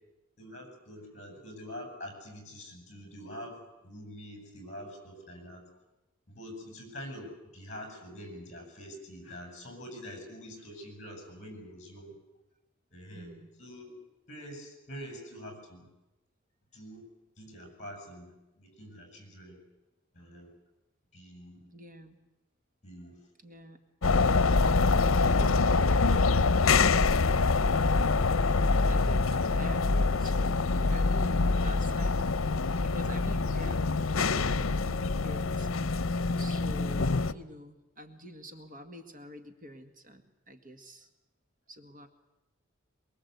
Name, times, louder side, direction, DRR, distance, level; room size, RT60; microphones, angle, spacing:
voice 1, 0.4-5.6 6.3-12.1 12.9-13.3 13.6-13.9 14.3-15.9 16.7-17.1 17.4-19.6 20.1-20.5 21.1-21.7 22.8-23.2 25.0-26.3, equal, 35° left, 3 dB, 7.7 m, -45 dB
voice 2, 13.1-13.5 21.7-22.2 23.4-23.8 24.4-26.2 27.7-32.2 32.8-35.9 36.4-41.1 41.7-42.1, equal, 40° right, 6 dB, 1.8 m, -47 dB
sound 1, 24.0-37.3, left 3 dB, 80° left, 0.8 m, -25 dB
23.5 x 22.5 x 8.2 m, 1.0 s
head